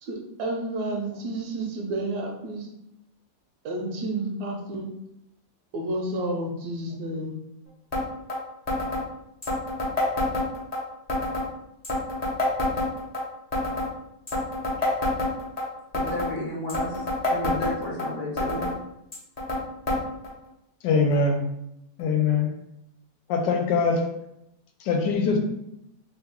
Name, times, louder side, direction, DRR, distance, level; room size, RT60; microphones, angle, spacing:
voice 1, 0.0-2.7 3.6-4.9 5.7-7.3, right 2 dB, 70° right, 1 dB, 1.0 m, -30 dB
sound 1, 7.9-8.0 8.3-8.4 8.7-9.0 9.4-10.8 11.1-11.5 11.8-13.2 13.5-13.9 14.3-15.6 15.9-16.3 16.7-18.1 18.4-18.7 19.1-19.6 19.9-20.0 20.2-20.3 21.1-21.2 22.0-22.1, left 1 dB, 40° left, 0.5 m, -26 dB
voice 2, 15.9-18.7, left 1 dB, 60° left, -3 dB, 1.3 m, -33 dB
voice 3, 20.8-21.4 22.0-22.5 23.3-24.0 24.8-25.4, left 4 dB, 80° left, 3 dB, 1.2 m, -22 dB
3.2 x 2.2 x 3.5 m, 0.82 s
omnidirectional pair, 1.9 m